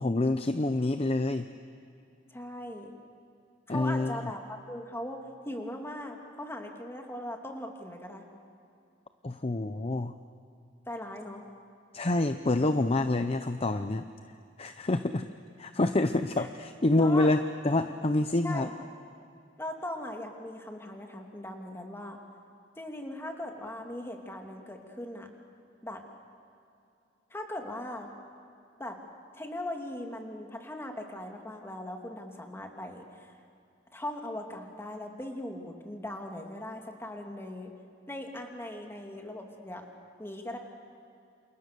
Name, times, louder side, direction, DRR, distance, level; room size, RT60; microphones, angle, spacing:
voice 1, 0.0-1.5 3.7-4.3 9.2-10.1 11.9-14.0 14.6-15.3 15.6-18.7, left 2 dB, 30° left, 9 dB, 0.7 m, -27 dB
voice 2, 2.3-2.9 3.7-8.3 10.9-11.4 16.3-16.5 17.0-17.3 18.4-18.7 19.6-22.2 22.8-25.3 25.8-26.0 27.3-28.1 28.8-29.0 29.3-33.0 33.9-37.7 38.1-39.8 40.2-40.6, left 1 dB, 15° left, 2 dB, 2.7 m, -39 dB
29.0 x 28.5 x 6.9 m, 2.6 s
head